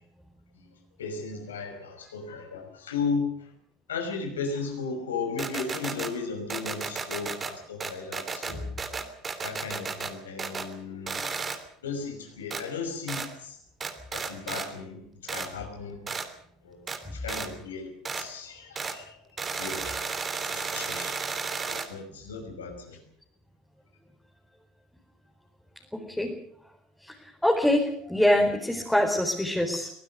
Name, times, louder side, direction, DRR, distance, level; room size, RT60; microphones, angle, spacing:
voice 1, 1.0-3.3 3.9-8.7 9.4-11.5 11.8-13.6 14.1-16.0 16.6-16.8 17.1-17.9 18.2-20.0 20.3-21.2 21.6-23.0, left 5 dB, 80° left, 5 dB, 5.6 m, -35 dB
sound 1, 5.4-6.1 6.5-7.5 7.8-10.1 10.4-10.7 11.1-11.6 12.5-12.6 13.1-13.3 13.8-14.7 15.3-15.5 16.1-16.3 16.9-17.0 17.3-17.5 18.0-18.3 18.7-19.0 19.4-21.9, right 5 dB, 25° right, 3.1 m, -33 dB
voice 2, 25.9-26.3 27.0-27.1 27.4-29.9, left 1 dB, 5° left, 0 dB, 4.5 m, -24 dB
23.5 x 19.0 x 6.5 m, 0.66 s
figure-of-eight pair, 70°, 0 cm